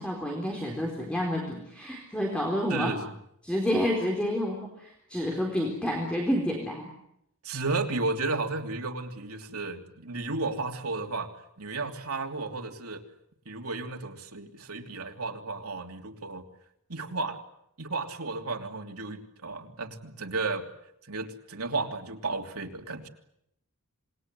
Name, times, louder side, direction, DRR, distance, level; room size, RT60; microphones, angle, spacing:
voice 1, 0.0-2.9 3.4-6.9, equal, 5° left, 0 dB, 4.2 m, -29 dB
voice 2, 2.7-3.0 7.4-11.3 11.6-13.0 13.4-16.5 16.9-17.4 17.8-20.6 21.0-23.1, right 3 dB, 85° right, 3 dB, 3.1 m, -33 dB
27.0 x 21.0 x 9.6 m, 0.77 s
head